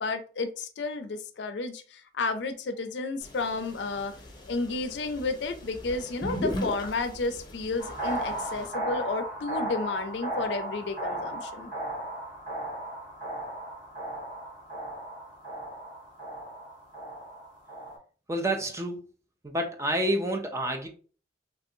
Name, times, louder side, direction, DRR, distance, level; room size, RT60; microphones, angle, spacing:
voice 1, 0.0-4.1 4.5-11.7, left 3 dB, 70° left, 9 dB, 0.4 m, -32 dB
sound 1, 3.2-8.7, left 1 dB, 25° left, 0.6 m, -38 dB
sound 2, 7.8-18.0, right 1 dB, 50° right, 1.6 m, -36 dB
voice 2, 18.3-19.0 19.4-20.9, right 1 dB, 15° right, 5 dB, 0.4 m, -28 dB
3.1 x 2.6 x 2.6 m, 0.39 s
head